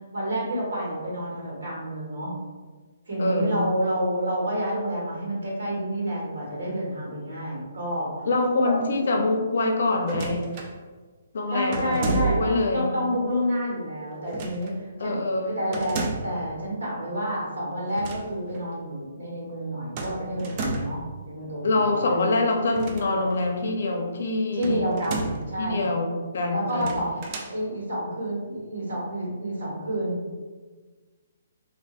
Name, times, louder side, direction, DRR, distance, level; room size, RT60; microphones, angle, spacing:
voice 1, 0.1-2.4 3.1-8.3 8.6-8.8 11.5-22.0 24.5-25.8 26.5-27.1 27.5-30.2, equal, 80° right, -4 dB, 1.4 m, -29 dB
voice 2, 3.2-3.6 8.3-10.4 11.3-12.9 15.0-15.6 21.6-24.8 25.6-26.9, left 2 dB, 65° left, 2 dB, 0.6 m, -25 dB
sound 1, 10.0-10.7 11.7-12.6 14.3-14.7 15.7-16.4 17.8-18.3 18.5-18.7 20.0-21.1 22.7-23.5 24.6-25.5 26.7-27.6, right 3 dB, 30° right, 0.4 m, -31 dB
3.7 x 2.3 x 2.4 m, 1.4 s
hypercardioid pair, 155°, 0 cm